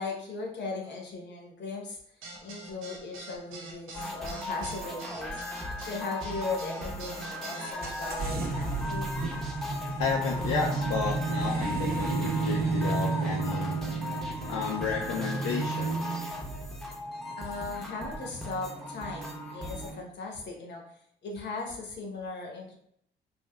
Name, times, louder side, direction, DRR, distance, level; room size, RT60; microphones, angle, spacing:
voice 1, 0.0-2.0 2.4-5.4 5.8-9.1 17.4-20.8 21.2-22.8, left 3 dB, 60° left, 0 dB, 0.9 m, -38 dB
sound 1, 2.2-8.1, right 3 dB, 90° right, 0.7 m, -44 dB
sound 2, 3.9-19.9, left 1 dB, ahead, 0.6 m, -38 dB
sound 3, 7.8-20.0, right 4 dB, 50° right, 0.6 m, -33 dB
voice 2, 10.0-13.8 14.5-16.0, left 6 dB, 80° left, -1 dB, 0.4 m, -32 dB
3.3 x 2.7 x 2.2 m, 0.69 s
cardioid pair, 90°, 20 cm